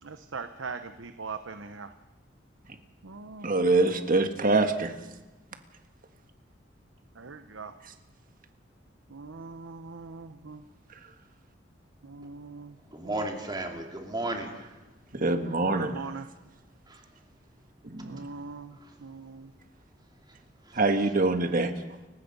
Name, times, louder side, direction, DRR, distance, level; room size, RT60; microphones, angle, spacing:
voice 1, 0.0-1.9 3.0-4.1 7.1-7.7 9.1-10.6 12.0-13.3 15.6-16.3 18.0-19.5, right 4 dB, 90° right, 9 dB, 0.9 m, -41 dB
voice 2, 3.4-4.9 15.1-15.9 17.8-18.2 20.7-21.7, right 2 dB, 45° right, 7 dB, 1.7 m, -24 dB
voice 3, 12.9-14.7 16.9-17.0 20.7-20.8, right 2 dB, 25° right, 2 dB, 2.7 m, -34 dB
30.0 x 16.0 x 5.5 m, 1.1 s
head